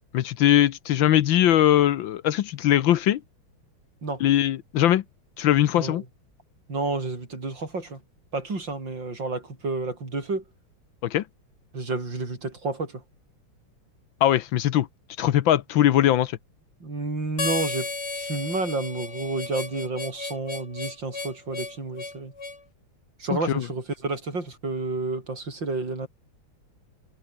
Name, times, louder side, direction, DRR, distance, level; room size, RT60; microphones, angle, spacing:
voice 1, 0.1-3.2 4.2-5.0 5.4-6.0 11.0-11.2 14.2-14.9 15.2-16.4 23.5-23.7, left 12 dB, 75° left, 1.5 m, -21 dB
voice 2, 6.7-8.0 8.3-10.4 11.7-13.0 16.8-22.3 23.2-26.1, right 3 dB, 60° right, 6.1 m, -30 dB
Harmonica, 17.4-22.6, left 3 dB, 90° left, 6.9 m, -33 dB
omnidirectional pair, 2.3 m